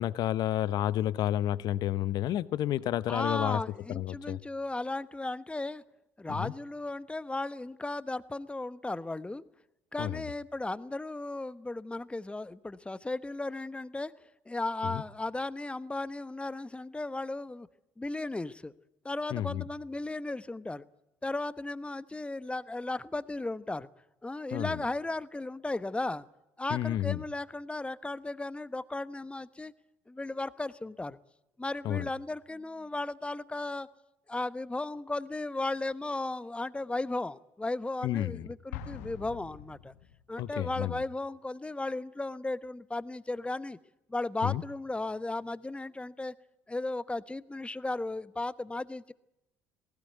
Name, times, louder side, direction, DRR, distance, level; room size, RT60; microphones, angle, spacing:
voice 1, 0.0-3.6 3.9-4.4 6.3-6.5 10.0-10.2 14.8-15.0 19.3-19.6 24.5-24.8 26.7-27.2 31.8-32.1 38.0-38.5 40.4-41.0 44.4-44.6, left 12 dB, 60° left, 18 dB, 0.8 m, -30 dB
voice 2, 3.1-5.8 6.2-9.4 9.9-14.1 14.5-17.7 18.0-18.7 19.0-20.9 21.2-23.9 24.2-26.3 26.6-29.7 30.1-31.2 31.6-33.9 34.3-39.9 40.3-43.8 44.1-46.3 46.7-49.1, left 2 dB, 15° left, 16 dB, 1.1 m, -35 dB
Explosion, 38.7-40.5, left 10 dB, 80° left, 1.6 m, -44 dB
19.5 x 17.5 x 9.2 m, 0.90 s
hypercardioid pair, 55°, 8 cm